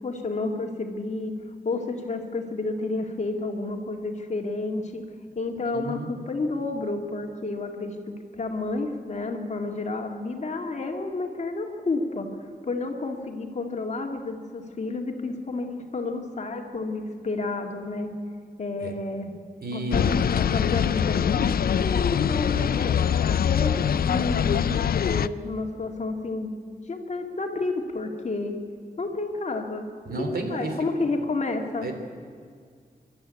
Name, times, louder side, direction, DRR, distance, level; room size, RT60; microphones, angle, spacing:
voice 1, 0.0-1.3 1.6-5.0 5.4-8.0 8.3-12.3 12.7-18.1 18.6-19.3 19.7-21.4 21.8-23.0 23.5-26.5 26.9-28.6 29.0-29.9 30.5-31.9, left 3 dB, 50° left, 3 dB, 2.2 m, -30 dB
voice 2, 5.7-6.1 18.8-18.9 19.6-20.1 30.0-30.9 31.8-31.9, right 2 dB, 80° right, 5 dB, 3.0 m, -31 dB
sound 1, 19.9-25.3, left 8 dB, 75° left, 0.5 m, -23 dB
25.5 x 12.5 x 9.5 m, 2.1 s
wide cardioid pair, 175°, 15 cm